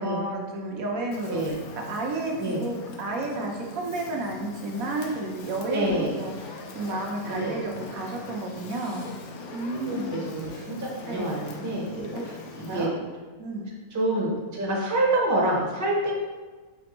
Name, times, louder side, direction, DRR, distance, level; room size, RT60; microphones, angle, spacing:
voice 1, 0.0-1.6 1.9-9.1 9.5-10.2 11.1-11.3 12.1-12.2 12.7-12.9 13.4-13.7, right 2 dB, 75° right, 0 dB, 1.2 m, -31 dB
Fire, 1.1-12.9, left 3 dB, 85° left, 1.1 m, -42 dB
voice 2, 5.6-6.2 7.2-7.6 9.9-12.1 12.6-12.9 13.9-16.1, right 1 dB, 15° right, -2 dB, 0.6 m, -27 dB
4.3 x 4.2 x 3.0 m, 1.4 s
omnidirectional pair, 1.5 m